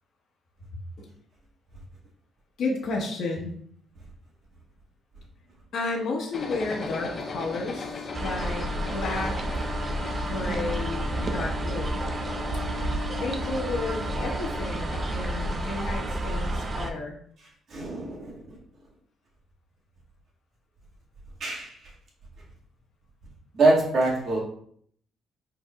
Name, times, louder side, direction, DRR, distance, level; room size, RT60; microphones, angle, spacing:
voice 1, 2.6-3.5 5.7-9.7 10.2-11.9 13.1-17.2, left 3 dB, 70° left, 0 dB, 1.2 m, -32 dB
sound 1, 6.3-15.9, left 5 dB, 45° left, 1.0 m, -38 dB
sound 2, 8.1-16.9, right 2 dB, 35° right, 0.6 m, -30 dB
voice 2, 17.7-18.6 21.4-21.9 23.5-24.4, right 2 dB, 60° right, -4 dB, 1.9 m, -24 dB
4.9 x 4.6 x 2.4 m, 0.62 s
cardioid pair, 90°, 0 cm